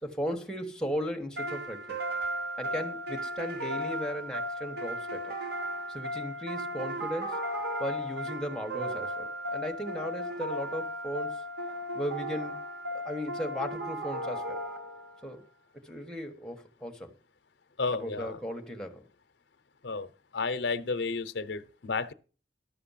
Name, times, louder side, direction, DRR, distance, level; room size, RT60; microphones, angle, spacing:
voice 1, 0.0-2.0 2.6-5.3 5.9-7.4 7.8-11.4 11.9-12.6 13.0-14.6 15.2-15.4 15.7-17.1 17.9-19.0, equal, 5° left, 1.3 m, -36 dB
sound 1, 1.4-15.2, equal, 60° right, 2.1 m, -35 dB
voice 2, 17.8-18.4 19.8-22.1, left 4 dB, 70° left, 0.8 m, -32 dB
12.0 x 6.8 x 5.8 m
head